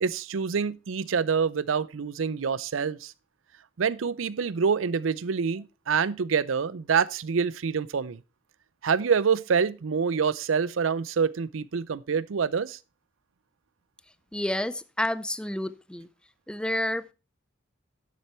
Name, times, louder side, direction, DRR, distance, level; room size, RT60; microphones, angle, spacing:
voice 1, 0.0-3.1 3.8-8.2 8.8-12.8, right 6 dB, 90° right, 0.5 m, -26 dB
voice 2, 14.3-16.1 16.5-17.1, left 1 dB, 5° left, 0.5 m, -30 dB
10.0 x 7.4 x 4.4 m
head